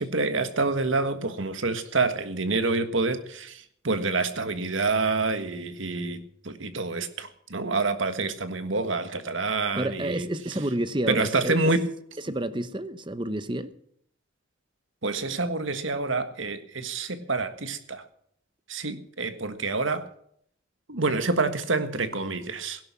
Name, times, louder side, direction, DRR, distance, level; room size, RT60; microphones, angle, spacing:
voice 1, 0.0-10.3 11.1-11.9 15.0-18.0 18.7-20.1 20.9-22.8, right 3 dB, 75° right, 1.6 m, -27 dB
voice 2, 9.7-11.6 12.2-13.7, right 1 dB, 25° right, 0.8 m, -29 dB
17.0 x 11.0 x 6.0 m
head